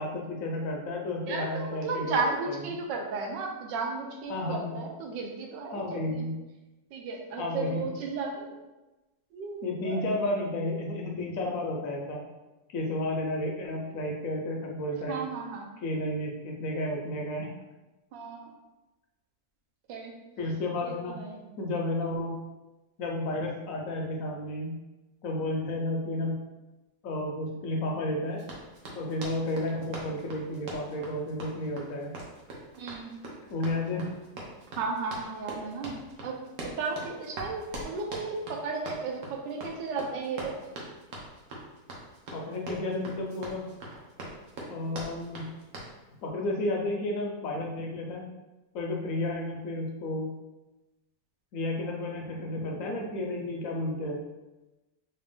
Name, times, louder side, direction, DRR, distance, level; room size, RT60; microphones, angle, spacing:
voice 1, 0.0-2.6 4.3-4.8 5.7-6.3 7.3-7.9 9.6-12.2 12.7-15.3 15.8-17.5 20.4-21.2 21.6-22.4 23.0-24.8 25.2-26.4 27.0-28.4 28.9-32.1 33.5-34.1 42.3-43.7 44.7-45.5 46.2-48.3 48.7-50.3 51.5-54.2, left 1 dB, 70° left, 0 dB, 0.8 m, -32 dB
voice 2, 1.3-6.2 6.9-8.6 9.3-10.0 15.1-15.7 18.1-18.5 19.9-20.1 20.8-21.4 32.8-33.2 34.8-40.6, right 4 dB, 90° right, 2 dB, 1.3 m, -34 dB
Run, 28.4-45.9, right 1 dB, 60° right, 1.1 m, -42 dB
3.3 x 2.7 x 3.4 m, 1.1 s
omnidirectional pair, 1.9 m